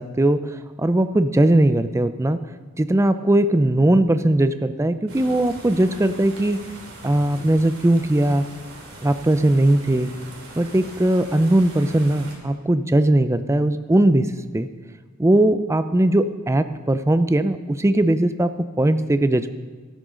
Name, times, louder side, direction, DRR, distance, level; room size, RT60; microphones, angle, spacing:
voice 1, 0.0-2.4 2.8-6.6 7.0-8.4 9.0-10.1 10.6-14.7 15.2-18.5 18.8-19.5, right 1 dB, 15° right, 11 dB, 0.4 m, -19 dB
sound 1, 5.1-12.4, right 2 dB, 75° right, 2.9 m, -41 dB
13.5 x 12.5 x 3.8 m, 1.4 s
head